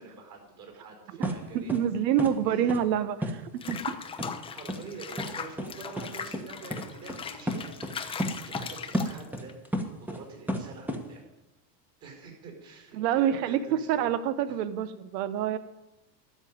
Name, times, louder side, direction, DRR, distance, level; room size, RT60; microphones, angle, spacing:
voice 1, 0.0-2.7 4.5-7.8 8.1-11.2 12.0-14.1 14.5-14.6, right 5 dB, 35° right, 1 dB, 5.2 m, -46 dB
sound 1, 1.2-1.4 1.7-1.8 2.2-2.3 2.7-2.8 3.2-3.3 3.7-3.8 4.2-4.3 4.7-4.8 5.2-5.3 5.6-5.7 6.0-6.1 6.3-6.4 6.7-6.8 7.1-7.2 7.5-7.9 8.2-8.7 8.9-10.2 10.5-11.0, equal, 5° right, 1.0 m, -31 dB
voice 2, 1.2-3.4 3.7-3.8 13.0-13.6 13.9-15.6, right 9 dB, 80° right, 13 dB, 1.0 m, -27 dB
Water / Bathtub (filling or washing), 3.6-9.5, left 6 dB, 10° left, 0.5 m, -39 dB
12.5 x 5.5 x 9.3 m, 0.92 s
supercardioid pair, 140°, 49 cm